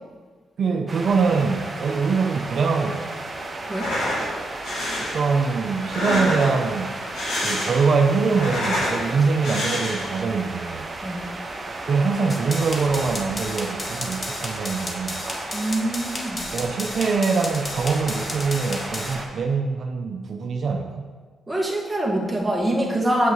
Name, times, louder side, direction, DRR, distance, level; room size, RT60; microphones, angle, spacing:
voice 1, 0.6-3.1 5.0-7.0 7.4-10.9 11.9-15.2 16.5-21.1, right 4 dB, 60° right, 3 dB, 0.5 m, -23 dB
sound 1, 0.9-19.3, right 2 dB, 35° right, 1.2 m, -34 dB
sound 2, 3.6-4.3 4.6-5.1 5.8-6.7 7.0-7.9 8.2-9.0 9.4-10.2, left 1 dB, 85° left, 2.6 m, -27 dB
sound 3, 12.3-19.1, left 2 dB, 35° left, 1.1 m, -34 dB
voice 2, 15.5-16.5 21.5-23.3, right 1 dB, 10° right, -3 dB, 1.7 m, -24 dB
8.0 x 7.8 x 3.1 m, 1.5 s
cardioid pair, 75°, 0 cm